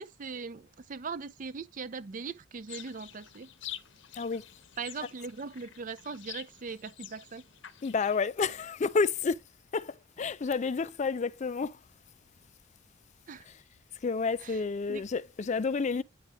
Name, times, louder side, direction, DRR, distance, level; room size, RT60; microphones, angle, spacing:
voice 1, 0.0-3.5 4.8-7.4 13.3-13.5 14.4-14.6 14.9-15.0, right 5 dB, 40° right, 0.5 m, -40 dB
sound 1, 2.7-8.3, left 12 dB, 65° left, 0.7 m, -47 dB
voice 2, 7.8-9.4 9.7-11.8 13.5-13.6 14.0-16.0, left 4 dB, 35° left, 0.4 m, -30 dB
9.2 x 4.9 x 3.0 m
head